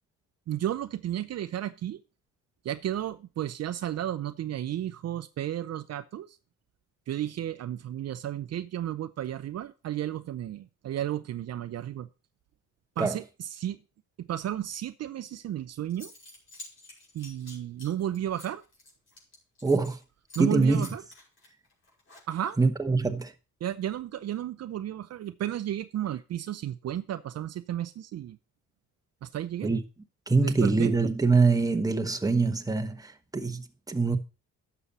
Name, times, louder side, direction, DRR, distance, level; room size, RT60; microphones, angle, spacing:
voice 1, 0.5-2.0 2.6-6.4 7.1-12.1 13.0-13.8 14.3-16.1 17.1-18.6 20.4-21.0 22.3-22.6 23.6-28.4 29.2-29.7 30.4-30.9, right 11 dB, 60° right, 0.6 m, -33 dB
Zipper (clothing) / Coin (dropping), 15.5-15.6 15.9-20.0 20.3-20.5 20.8-22.6, left 2 dB, 45° left, 5.7 m, -49 dB
voice 2, 19.6-20.0 20.4-20.9 22.6-23.3 29.6-29.8 30.3-34.2, right 3 dB, 10° right, 1.1 m, -24 dB
11.0 x 6.9 x 4.1 m
cardioid pair, 90°, 30 cm